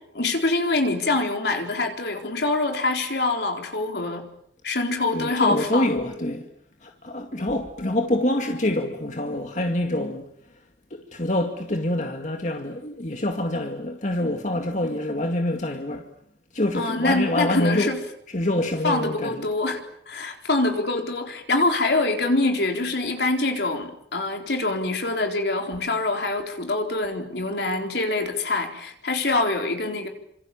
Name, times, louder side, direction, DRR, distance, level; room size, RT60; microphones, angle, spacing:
voice 1, 0.1-4.2 4.6-5.9 16.7-18.0 18.8-19.8 20.1-30.1, left 2 dB, 70° left, 4.3 m, -25 dB
voice 2, 5.1-6.5 6.8-10.2 10.9-16.1 16.5-17.9 18.3-19.5, left 1 dB, 45° left, 2.2 m, -26 dB
29.5 x 26.5 x 7.3 m
head